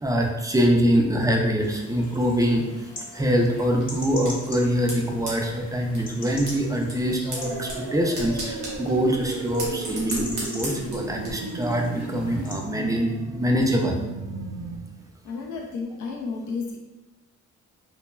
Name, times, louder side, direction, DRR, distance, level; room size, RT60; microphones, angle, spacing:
voice 1, 0.0-14.0, equal, 10° right, 1 dB, 0.3 m, -24 dB
sound 1, 1.6-12.5, left 2 dB, 30° left, 0.8 m, -42 dB
sound 2, 3.5-11.3, right 1 dB, 90° right, 1.0 m, -38 dB
sound 3, 7.4-14.8, right 3 dB, 70° right, 0.5 m, -34 dB
voice 2, 15.2-16.8, left 4 dB, 75° left, -1 dB, 0.5 m, -32 dB
3.1 x 2.1 x 2.2 m, 1.0 s
cardioid pair, 90°, 30 cm